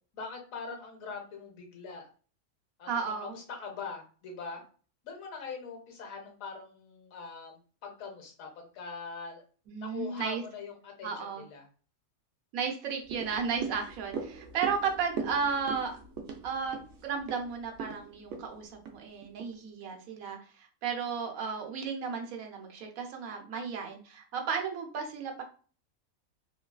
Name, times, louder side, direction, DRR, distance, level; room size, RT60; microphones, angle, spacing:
voice 1, 0.1-2.1 2.8-4.6 5.0-9.4 9.8-11.7, left 4 dB, 80° left, 2 dB, 1.2 m, -42 dB
voice 2, 2.9-3.3 9.7-10.4 11.0-11.4 12.5-15.9 16.4-16.8 17.0-25.4, right 6 dB, 85° right, 2 dB, 1.1 m, -34 dB
sound 1, 13.1-19.5 19.9-20.0, right 5 dB, 70° right, 0.8 m, -40 dB
3.1 x 2.3 x 2.2 m, 0.39 s
omnidirectional pair, 1.4 m